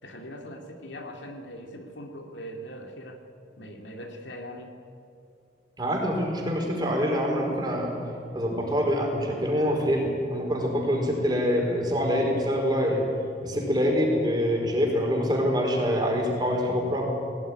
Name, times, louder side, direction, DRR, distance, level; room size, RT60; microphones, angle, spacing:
voice 1, 0.0-3.2 3.6-4.7, equal, 75° left, 3 dB, 2.5 m, -41 dB
voice 2, 5.8-7.9 8.3-13.0 13.4-17.1, equal, 25° right, 0 dB, 4.6 m, -25 dB
20.5 x 18.5 x 10.0 m, 2.5 s
head